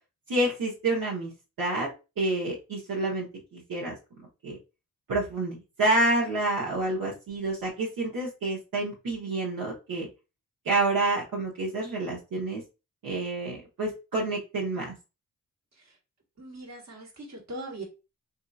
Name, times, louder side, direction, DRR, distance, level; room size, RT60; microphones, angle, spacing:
voice 1, 0.3-1.3 1.6-1.9 2.2-3.3 3.5-3.9 4.4-4.6 5.1-10.1 10.6-12.6 13.0-14.9, right 2 dB, 70° right, -4 dB, 1.0 m, -28 dB
voice 2, 16.4-17.8, right 1 dB, 50° right, 0 dB, 1.4 m, -40 dB
2.7 x 2.7 x 2.3 m, 0.29 s
cardioid pair, 55°, 35 cm